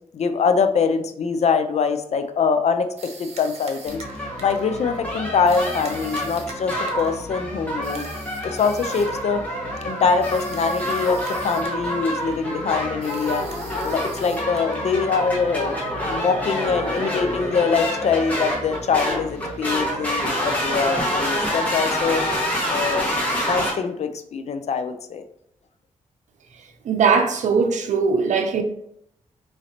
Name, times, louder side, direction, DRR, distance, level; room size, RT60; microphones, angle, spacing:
voice 1, 0.1-2.9 3.2-4.0 4.4-8.0 8.4-9.4 9.8-13.4 13.8-22.2 22.7-23.0 23.5-25.2, left 5 dB, 60° left, 0.5 m, -23 dB
sound 1, 3.0-4.7 5.5-7.2 7.8-9.2 10.2-11.8 12.1-12.4 13.0-14.9, right 4 dB, 55° right, 1.0 m, -43 dB
sound 2, 3.9-23.7, equal, 10° left, 1.6 m, -27 dB
voice 2, 26.8-28.6, right 5 dB, 75° right, 0.6 m, -20 dB
4.9 x 3.1 x 2.8 m
cardioid pair, 80°, 13 cm